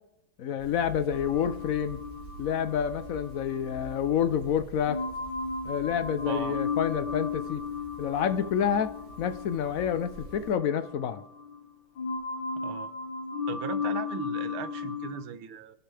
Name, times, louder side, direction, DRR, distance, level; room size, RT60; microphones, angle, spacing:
voice 1, 0.4-2.0 2.4-5.0 5.6-7.6 8.0-8.9 9.2-11.2, left 8 dB, 90° left, 12 dB, 0.7 m, -28 dB
sound 1, 0.6-10.6, right 2 dB, 65° right, 3.7 m, -48 dB
sound 2, 1.1-4.4 4.9-11.7 12.0-15.2, left 5 dB, 65° left, 2.3 m, -35 dB
voice 2, 6.3-6.6 12.6-12.9 13.5-15.8, right 8 dB, 85° right, 11 dB, 1.9 m, -38 dB
28.5 x 12.0 x 3.4 m, 0.90 s
omnidirectional pair, 2.3 m